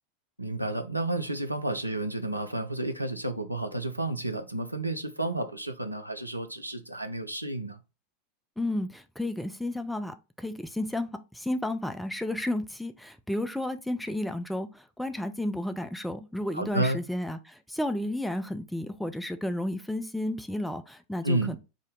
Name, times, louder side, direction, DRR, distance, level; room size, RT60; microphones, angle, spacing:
voice 1, 0.4-7.8 16.5-17.0 21.2-21.6, right 2 dB, 90° right, 0.5 m, -31 dB
voice 2, 8.6-21.6, left 1 dB, ahead, 0.4 m, -32 dB
5.0 x 2.7 x 3.8 m
figure-of-eight pair, 85°, 0 cm